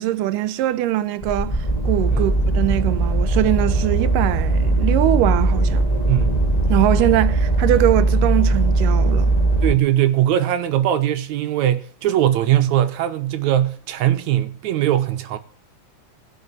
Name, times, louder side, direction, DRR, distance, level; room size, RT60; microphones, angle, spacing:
voice 1, 0.0-1.6 1.9-5.9 6.7-9.4, right 14 dB, 90° right, 2.4 m, -21 dB
sound 1, 1.2-9.7, right 2 dB, 20° left, 1.1 m, -19 dB
voice 2, 9.6-15.4, right 12 dB, 70° right, 2.2 m, -20 dB
15.5 x 6.0 x 8.2 m
omnidirectional pair, 3.7 m